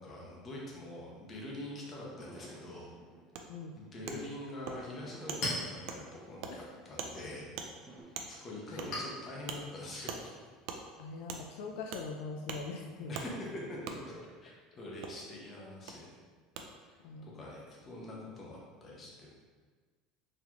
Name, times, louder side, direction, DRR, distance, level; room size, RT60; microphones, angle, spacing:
voice 1, 0.0-2.9 3.7-7.5 8.0-10.3 13.1-16.2 16.9-19.3, left 1 dB, 25° left, -4 dB, 0.8 m, -44 dB
sound 1, 2.1-4.4 5.0-7.3 7.9-8.0, right 1 dB, 15° right, 0.8 m, -55 dB
Wood, 3.3-3.4 4.1-4.2 4.7-4.8 5.3-5.4 5.9-6.0 6.4-6.5 7.0-7.1 7.6-7.7 8.1-8.3 8.8-8.9 9.5-9.6 10.1-10.2 10.7-10.8 11.3-11.4 11.9-12.0 12.5-12.6 13.1-13.3 13.8-14.0 15.0-15.1 15.9-16.0 16.5-16.6, right 6 dB, 60° right, 0.4 m, -40 dB
Chink clink, 4.8-12.0, left 1 dB, 50° left, 1.2 m, -45 dB
voice 2, 11.0-13.2 17.0-17.3, left 4 dB, 75° left, 2 dB, 0.3 m, -42 dB
4.0 x 3.0 x 2.9 m, 1.5 s
cardioid pair, 165°, 0 cm